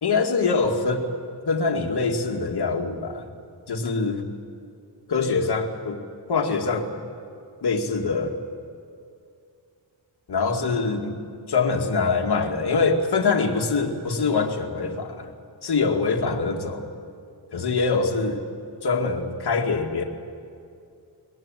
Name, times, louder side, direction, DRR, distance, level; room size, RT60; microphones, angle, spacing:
voice 1, 0.0-1.1 1.4-3.3 3.7-4.2 5.1-6.0 6.3-7.0 7.6-8.4 10.3-11.2 11.5-15.3 15.6-16.9 17.5-18.4 18.8-20.0, left 4 dB, 55° left, 3 dB, 2.2 m, -24 dB
22.5 x 20.0 x 9.0 m, 2.4 s
wide cardioid pair, 140°, 46 cm